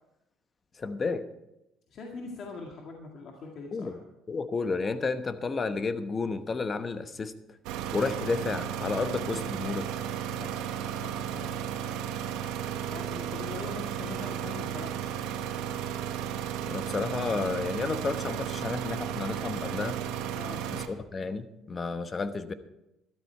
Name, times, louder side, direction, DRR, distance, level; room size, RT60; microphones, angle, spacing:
voice 1, 0.8-1.2 3.7-4.0 4.3-7.3 7.9-9.9 16.7-20.0 20.7-22.5, left 4 dB, 30° left, 10 dB, 1.0 m, -31 dB
voice 2, 1.9-4.0 10.3-10.7 11.0-11.6 12.8-15.0 20.4-20.7, left 3 dB, 50° left, 0 dB, 2.0 m, -42 dB
sound 1, 7.6-20.9, right 9 dB, 90° right, 1.2 m, -34 dB
13.0 x 13.0 x 4.5 m, 0.90 s
cardioid pair, 110°, 0 cm